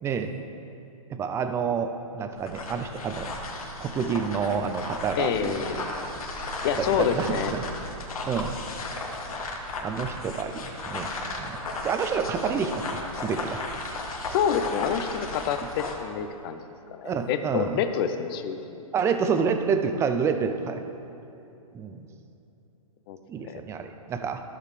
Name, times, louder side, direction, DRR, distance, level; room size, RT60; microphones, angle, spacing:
voice 1, 0.0-0.3 1.1-3.3 3.8-5.8 6.8-7.6 8.3-8.5 9.8-11.1 11.4-12.8 13.1-13.6 17.0-17.8 18.9-20.8 21.7-22.1 23.3-24.4, right 6 dB, 15° right, 7 dB, 0.5 m, -28 dB
sound 1, 2.4-16.0, left 2 dB, 75° left, 1.6 m, -35 dB
voice 2, 5.2-5.8 6.6-7.5 14.3-16.6 16.9-18.8 23.1-23.2 23.5-23.6, left 8 dB, 40° left, 9 dB, 0.7 m, -27 dB
14.0 x 6.6 x 3.3 m, 2.8 s
hypercardioid pair, 130°, 18 cm